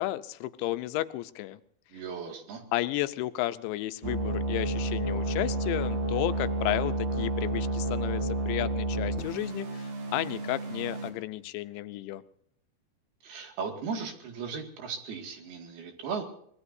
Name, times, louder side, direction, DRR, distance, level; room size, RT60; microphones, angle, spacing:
voice 1, 0.0-1.6 2.7-12.2, left 16 dB, 85° left, 12 dB, 3.0 m, -33 dB
voice 2, 1.9-2.6 13.2-16.2, right 5 dB, 65° right, 4 dB, 3.9 m, -37 dB
sound 1, 4.0-11.1, right 1 dB, 45° right, 3.8 m, -31 dB
25.0 x 20.0 x 2.7 m, 0.67 s
omnidirectional pair, 5.2 m